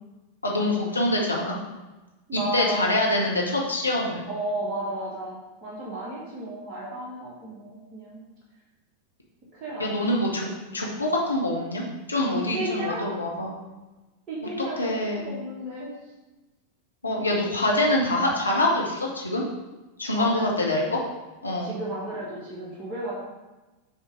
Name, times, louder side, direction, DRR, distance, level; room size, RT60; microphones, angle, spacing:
voice 1, 0.4-1.5 2.3-4.2 9.8-10.5 10.7-11.8 12.1-13.5 14.8-15.3 17.0-19.4 20.0-21.0 21.4-21.7, left 1 dB, 80° left, -2 dB, 0.9 m, -25 dB
voice 2, 2.3-2.9 4.2-8.2 9.5-10.2 12.3-13.1 14.3-15.9 20.1-20.5 21.6-23.1, right 1 dB, 25° right, -6 dB, 1.6 m, -33 dB
7.2 x 3.7 x 4.9 m, 1.1 s
figure-of-eight pair, 90°, 0 cm